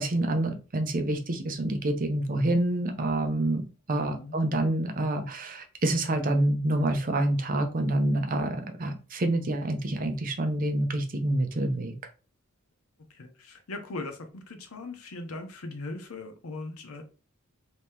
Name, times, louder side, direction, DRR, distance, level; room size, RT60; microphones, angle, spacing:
voice 1, 0.0-11.9, right 1 dB, 40° right, 6 dB, 0.6 m, -27 dB
voice 2, 13.1-17.0, left 2 dB, 90° left, 6 dB, 0.8 m, -39 dB
3.0 x 2.8 x 3.5 m, 0.33 s
head